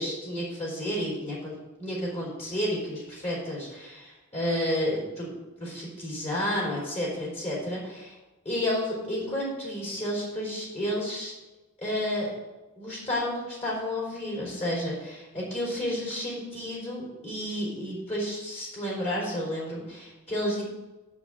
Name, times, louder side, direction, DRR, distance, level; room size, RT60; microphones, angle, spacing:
voice 1, 0.0-8.1 8.4-11.3 11.8-12.3 12.8-20.6, left 1 dB, 30° left, -4 dB, 4.1 m, -31 dB
7.2 x 7.2 x 7.6 m, 1.1 s
head